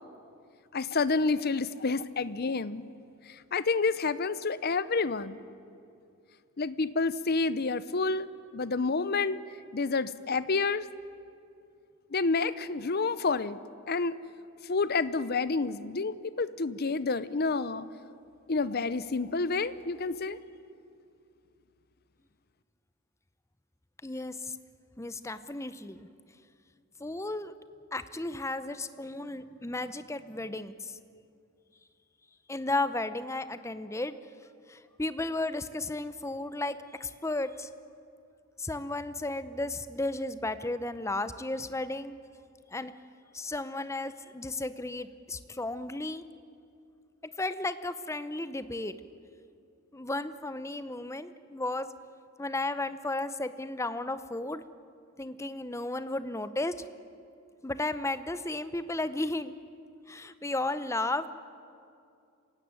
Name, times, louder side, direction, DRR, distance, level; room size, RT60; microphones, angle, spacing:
voice 1, 0.7-2.8 3.3-5.4 6.6-8.3 8.5-9.4 9.7-10.9 12.1-13.6 13.9-14.2 14.6-17.9 18.5-20.4, left 4 dB, 45° left, 16 dB, 0.7 m, -29 dB
voice 2, 24.0-24.5 25.0-26.1 27.0-27.5 27.9-31.0 32.5-34.2 34.7-37.7 38.6-42.2 42.7-42.9 43.3-46.3 47.4-48.9 49.9-51.9 52.4-54.6 55.2-56.7 57.6-59.5 60.1-61.3, left 2 dB, 15° left, 12 dB, 0.7 m, -34 dB
26.5 x 16.0 x 9.6 m, 2.5 s
head